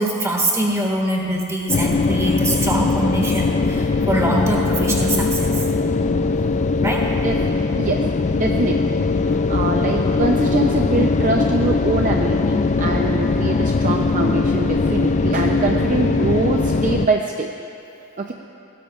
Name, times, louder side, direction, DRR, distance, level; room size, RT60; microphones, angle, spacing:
voice 1, 0.0-6.0 6.8-7.1, right 1 dB, 15° right, -1 dB, 1.8 m, -23 dB
sound 1, 1.7-17.1, left 3 dB, 35° left, 0.3 m, -20 dB
voice 2, 7.2-8.1 8.3-17.5 18.2-18.3, right 3 dB, 35° right, 2 dB, 0.6 m, -24 dB
21.0 x 17.0 x 2.4 m, 2.6 s
head